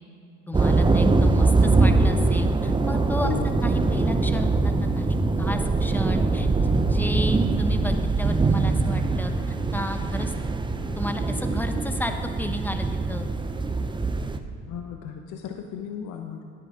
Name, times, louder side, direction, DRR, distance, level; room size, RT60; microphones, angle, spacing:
voice 1, 0.5-9.3 9.7-10.3 11.0-13.3, left 1 dB, 5° left, 6 dB, 1.0 m, -33 dB
sound 1, 0.5-14.4, right 3 dB, 15° right, 0.7 m, -23 dB
voice 2, 3.2-3.6 14.7-16.4, left 8 dB, 65° left, 5 dB, 0.9 m, -34 dB
12.0 x 10.0 x 3.8 m, 2.7 s
hypercardioid pair, 65°, 34 cm